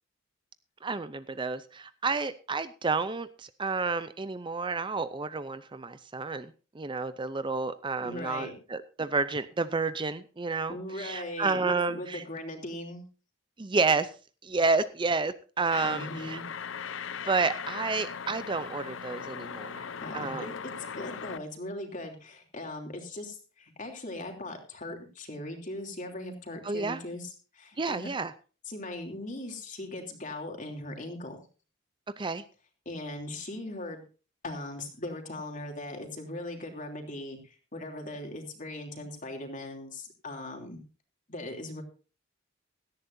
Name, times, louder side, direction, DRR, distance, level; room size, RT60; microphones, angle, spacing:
voice 1, 0.8-12.2 13.6-14.1 14.4-16.4 17.2-19.8 20.1-20.5 26.6-27.0 27.8-28.3 32.2-32.4, right 4 dB, 25° right, 13 dB, 0.5 m, -30 dB
voice 2, 8.0-8.5 10.7-13.0 15.8-16.4 20.0-28.1 28.7-31.4 32.8-34.0 34.4-40.8 41.3-41.8, left 1 dB, 40° left, 3 dB, 3.1 m, -39 dB
sound 1, 15.7-21.4, left 6 dB, 70° left, 0.7 m, -39 dB
17.5 x 13.5 x 2.7 m, 0.35 s
head